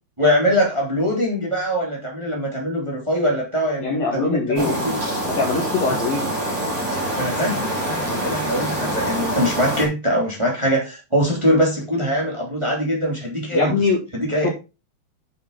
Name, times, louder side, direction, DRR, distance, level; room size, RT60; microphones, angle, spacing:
voice 1, 0.2-5.0 5.9-6.0 7.2-13.8 14.1-14.5, equal, 10° right, -1 dB, 2.4 m, -22 dB
voice 2, 3.8-4.9 5.3-6.3 13.5-14.0 14.4-14.5, left 4 dB, 50° left, -1 dB, 2.9 m, -22 dB
sound 1, 4.6-9.8, right 1 dB, 30° right, 5.0 m, -25 dB
8.6 x 7.3 x 4.0 m, 0.28 s
omnidirectional pair, 4.3 m